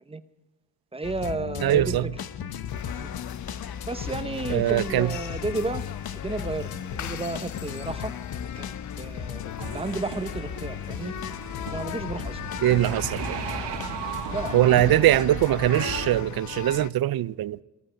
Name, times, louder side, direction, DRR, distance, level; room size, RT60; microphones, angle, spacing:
voice 1, 0.9-2.0 3.0-3.1 3.9-5.8 6.2-6.7 7.0-8.1 8.6-8.7 9.0-9.4 9.7-11.1 11.7-12.4 14.3-15.1, right 3 dB, 15° right, 1.0 m, -32 dB
sound 1, 1.0-16.0, left 8 dB, 60° left, 1.0 m, -36 dB
voice 2, 1.6-2.1 4.5-5.2 12.6-13.4 14.5-17.6, right 14 dB, 60° right, 0.6 m, -22 dB
sound 2, 2.7-16.9, left 10 dB, 45° left, 0.5 m, -39 dB
sound 3, 9.6-16.2, right 6 dB, 85° right, 1.7 m, -36 dB
19.5 x 14.0 x 5.2 m
cardioid pair, 65°, 41 cm